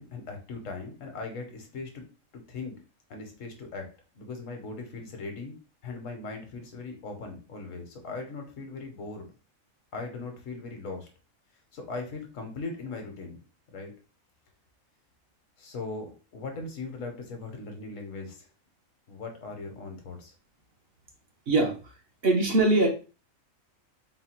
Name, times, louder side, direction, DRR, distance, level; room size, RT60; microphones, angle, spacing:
voice 1, 0.0-2.0 2.3-2.8 3.1-5.5 5.8-9.3 9.9-11.1 11.7-13.4 13.7-13.9 15.6-18.5 19.1-20.3, left 3 dB, 75° left, 4 dB, 1.3 m, -39 dB
voice 2, 21.5-21.9 22.2-22.9, right 2 dB, 50° right, 2 dB, 1.0 m, -22 dB
4.0 x 2.2 x 4.3 m, 0.33 s
omnidirectional pair, 1.4 m